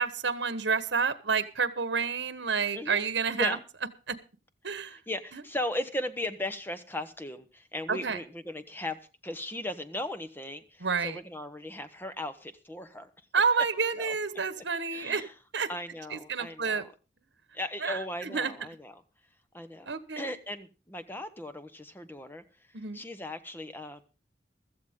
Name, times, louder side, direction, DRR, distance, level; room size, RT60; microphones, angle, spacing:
voice 1, 0.0-3.6 4.1-4.2 4.6-5.0 5.3-5.4 7.9-8.2 10.8-11.2 13.3-15.2 15.5-15.7 16.1-16.8 17.8-18.5 19.9-20.3 22.7-23.0, right 5 dB, 80° right, 12 dB, 1.3 m, -29 dB
voice 2, 2.7-3.1 3.4-3.6 4.7-13.1 13.9-14.1 14.9-15.3 15.7-16.9 17.5-18.9 19.5-22.4 22.9-24.0, left 1 dB, 10° left, 9 dB, 1.0 m, -37 dB
15.5 x 14.0 x 3.8 m, 0.33 s
head